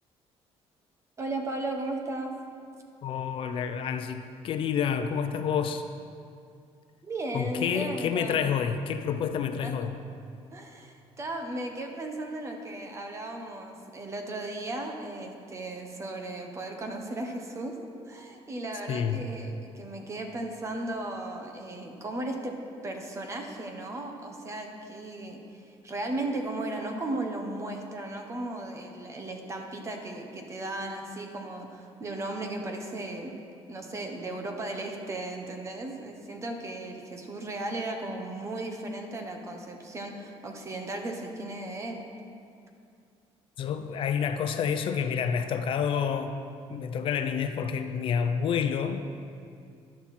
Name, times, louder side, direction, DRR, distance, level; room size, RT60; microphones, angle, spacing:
voice 1, 1.2-2.3 7.0-8.4 9.6-9.9 10.5-17.8 18.1-22.6 22.8-25.4 25.7-33.3 33.7-42.0, right 2 dB, 25° right, 3 dB, 1.3 m, -36 dB
voice 2, 3.0-5.8 7.3-10.0 18.9-19.3 43.6-46.4 46.7-49.0, left 7 dB, 55° left, 8 dB, 0.6 m, -29 dB
13.0 x 11.5 x 4.4 m, 2.4 s
cardioid pair, 150°, 11 cm